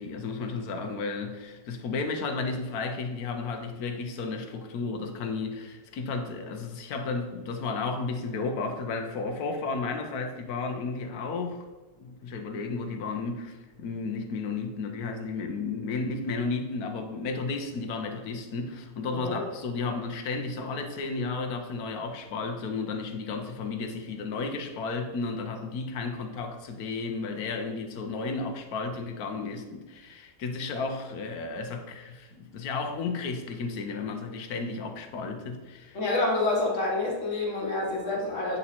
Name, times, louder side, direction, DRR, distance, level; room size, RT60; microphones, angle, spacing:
voice 1, 0.0-11.7 12.0-36.0, left 4 dB, 65° left, 1.1 m, -33 dB
voice 2, 35.9-38.6, left 2 dB, 45° left, 1.7 m, -28 dB
8.5 x 2.9 x 4.1 m
omnidirectional pair, 1.9 m